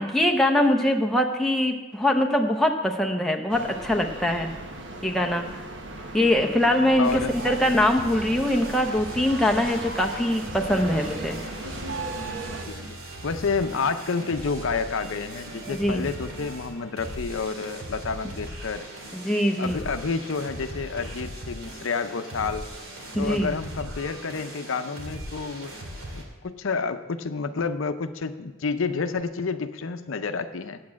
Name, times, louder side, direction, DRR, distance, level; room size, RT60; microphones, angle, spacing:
voice 1, 0.0-4.5 5.0-5.5 6.1-11.4 15.7-16.0 19.1-19.8 23.2-23.5, left 1 dB, ahead, 2 dB, 0.7 m, -23 dB
sound 1, 3.5-12.7, right 2 dB, 60° right, 1.1 m, -37 dB
voice 2, 7.0-7.3 12.7-13.0 13.2-18.9 19.6-22.7 23.2-25.7 26.1-30.8, left 4 dB, 70° left, 9 dB, 0.6 m, -29 dB
cyberpunk metal, 7.0-26.2, right 1 dB, 85° right, 2.3 m, -39 dB
8.6 x 8.4 x 7.4 m, 1.2 s
head